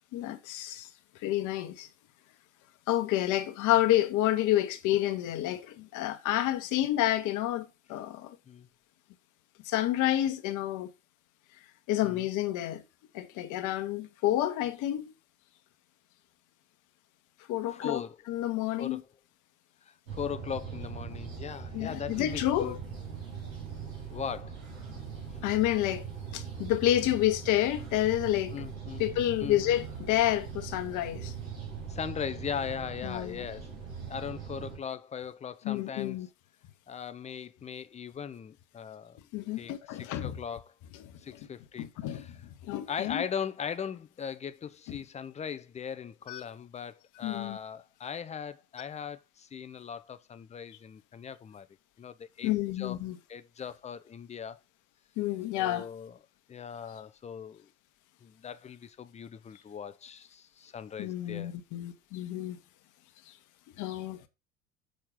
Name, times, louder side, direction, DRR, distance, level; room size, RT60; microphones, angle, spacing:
voice 1, 0.1-0.9 1.2-1.9 2.9-8.4 9.6-10.9 11.9-12.8 13.1-15.1 17.5-18.0 18.3-19.0 21.7-22.8 25.4-26.1 26.3-28.5 29.0-31.3 33.0-33.4 35.6-36.3 39.3-40.4 41.8-42.4 42.6-43.2 46.3-46.4 47.2-47.6 52.4-53.2 55.2-55.9 61.0-62.6 63.8-64.3, left 13 dB, 50° left, 1.1 m, -29 dB
voice 2, 17.7-18.2 18.8-19.1 19.9-22.8 24.1-24.6 27.1-27.3 28.5-29.1 29.4-29.6 31.9-33.7 34.1-36.3 36.9-39.3 39.6-40.7 41.2-42.4 42.9-51.7 52.0-53.0 53.3-54.6 55.5-56.2 56.5-57.7 58.2-61.5, left 7 dB, 15° left, 0.6 m, -39 dB
sound 1, 20.1-34.8, right 6 dB, 80° right, 2.7 m, -41 dB
6.4 x 4.3 x 5.1 m
figure-of-eight pair, 65°, 40 cm